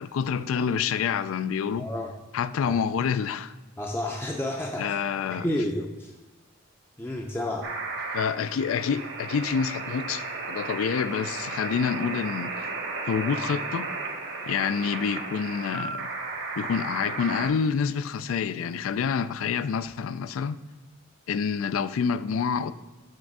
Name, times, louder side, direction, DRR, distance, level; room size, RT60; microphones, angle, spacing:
voice 1, 0.0-1.9 2.3-3.5 4.8-5.5 8.1-12.7 13.1-13.9 14.5-16.1 16.6-20.6 21.3-22.7, left 6 dB, 80° left, 0.3 m, -27 dB
voice 2, 1.8-2.1 2.6-2.7 3.8-4.9 5.3-6.1 7.0-7.7, left 1 dB, 10° left, 0.5 m, -30 dB
sound 1, 7.6-17.5, right 3 dB, 60° right, 1.0 m, -34 dB
6.5 x 3.4 x 6.0 m
head